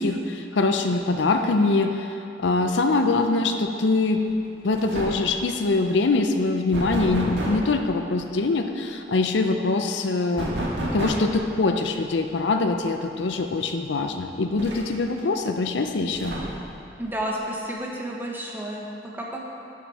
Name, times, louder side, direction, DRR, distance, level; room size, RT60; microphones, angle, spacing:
voice 1, 0.0-4.2 4.6-10.5 10.9-16.3, left 3 dB, 70° left, 6 dB, 0.5 m, -23 dB
sound 1, 4.3-4.5 4.7-5.4 6.7-7.7 10.4-11.4 13.0-13.1 13.5-13.6 14.6-15.2 16.1-16.8, right 1 dB, 70° right, 1.6 m, -30 dB
voice 2, 17.0-18.9 19.1-19.5, right 1 dB, 10° right, -2 dB, 1.1 m, -31 dB
12.0 x 5.9 x 4.2 m, 2.6 s
head